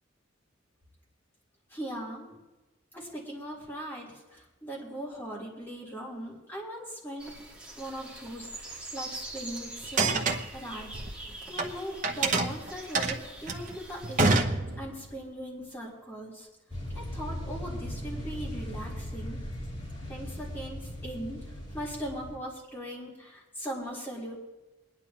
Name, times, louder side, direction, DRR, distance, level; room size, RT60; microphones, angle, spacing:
voice 1, 1.7-2.3 2.9-7.3 7.8-10.2 10.5-11.0 11.5-14.5 14.8-16.5 16.9-19.4 20.1-21.4 21.7-24.4, equal, 10° left, -5 dB, 3.6 m, -39 dB
sound 1, 7.2-14.4, right 2 dB, 5° right, 2.0 m, -44 dB
sound 2, 9.8-11.7 12.0-15.1, right 3 dB, 40° right, 0.9 m, -27 dB
sound 3, 16.7-22.4, equal, 25° left, 3.7 m, -38 dB
23.0 x 10.5 x 3.0 m, 1.1 s
head